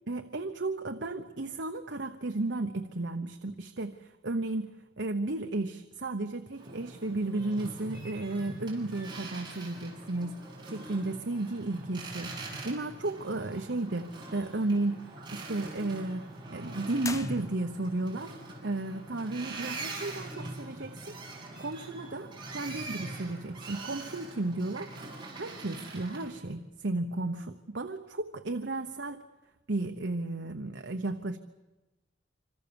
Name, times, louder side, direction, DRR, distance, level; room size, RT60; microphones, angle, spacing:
voice 1, 0.1-18.4 18.6-21.2 21.6-24.9 25.3-29.2 29.7-31.4, right 2 dB, 70° right, 7 dB, 1.1 m, -34 dB
Boat Water vehicle, 6.5-26.4, right 2 dB, 25° right, 6.8 m, -43 dB
sound 1, 17.0-18.0, left 4 dB, 15° left, 0.8 m, -41 dB
26.5 x 26.0 x 7.1 m, 1.1 s
head